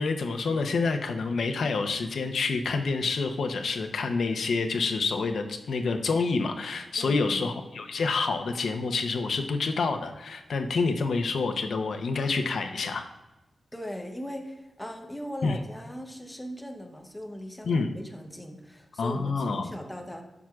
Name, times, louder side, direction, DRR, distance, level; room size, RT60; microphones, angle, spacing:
voice 1, 0.0-13.1 15.4-15.6 17.6-17.9 19.0-19.7, left 4 dB, 80° left, 6 dB, 0.6 m, -28 dB
voice 2, 7.0-7.5 13.7-20.2, equal, 5° left, 3 dB, 0.8 m, -39 dB
12.0 x 6.1 x 2.3 m, 1.1 s
wide cardioid pair, 175°, 0 cm